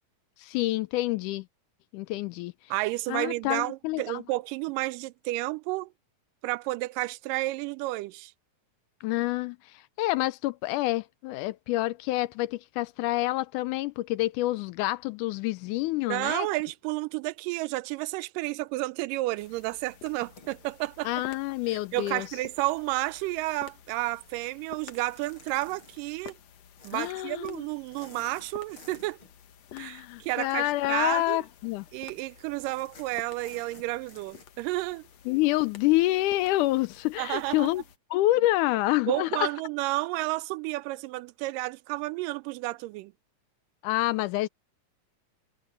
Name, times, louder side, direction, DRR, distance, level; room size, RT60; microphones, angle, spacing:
voice 1, 0.4-1.4 1.9-2.5 3.1-4.2 9.0-9.6 10.0-16.5 21.1-22.3 26.9-27.6 29.7-31.8 35.3-37.8 38.1-39.5 43.8-44.5, left 17 dB, 80° left, 2.0 m, -27 dB
voice 2, 2.7-5.9 6.4-8.3 16.1-21.1 21.7-26.4 26.8-29.2 29.8-31.4 31.9-35.1 37.2-37.7 39.1-43.1, right 20 dB, 85° right, 2.2 m, -31 dB
sound 1, 19.4-38.0, left 9 dB, 60° left, 2.2 m, -52 dB
sound 2, 20.0-21.5 22.0-23.5 24.8-26.0 26.8-27.2 27.4-27.6 27.9-29.3 30.6-30.9 31.2-31.3 31.6-31.9 32.6-34.4, left 3 dB, 40° left, 6.3 m, -53 dB
omnidirectional pair, 3.8 m